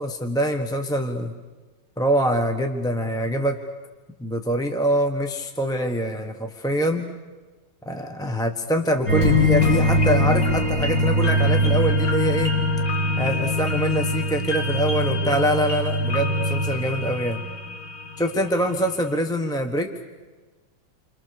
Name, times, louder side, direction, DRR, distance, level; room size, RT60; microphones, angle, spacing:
voice 1, 0.0-1.3 2.0-3.6 4.2-7.1 7.8-12.5 13.2-17.4 18.2-19.9, right 1 dB, 5° left, 4 dB, 0.9 m, -24 dB
sound 1, 9.1-18.4 18.8-18.9, left 1 dB, 45° left, 2.8 m, -22 dB
29.5 x 25.0 x 6.8 m, 1.3 s
omnidirectional pair, 2.2 m